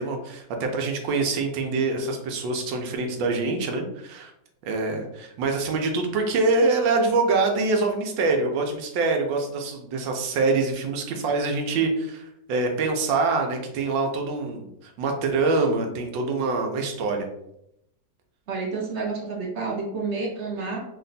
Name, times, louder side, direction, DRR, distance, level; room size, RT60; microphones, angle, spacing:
voice 1, 0.0-4.3 4.6-17.3, right 3 dB, 90° right, 3 dB, 1.4 m, -25 dB
voice 2, 18.5-20.8, right 4 dB, 65° right, -1 dB, 0.7 m, -29 dB
3.4 x 2.2 x 3.9 m, 0.79 s
omnidirectional pair, 2.0 m